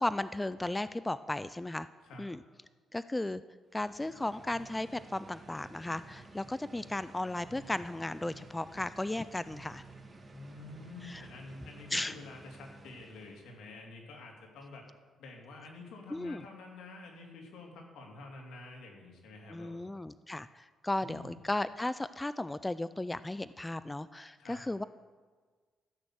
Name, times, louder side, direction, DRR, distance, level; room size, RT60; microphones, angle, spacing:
voice 1, 0.0-1.9 2.2-2.4 2.9-3.4 3.7-9.8 11.0-11.3 11.9-12.1 16.1-16.4 19.5-24.8, left 2 dB, 15° left, 15 dB, 0.3 m, -35 dB
sound 1, 3.7-13.7, right 3 dB, 25° right, 1.9 m, -53 dB
voice 2, 10.3-14.8 15.2-19.9 21.0-21.4 24.4-24.6, left 3 dB, 80° left, 0 dB, 2.9 m, -48 dB
14.5 x 6.3 x 7.8 m, 1.5 s
cardioid pair, 90°, 0 cm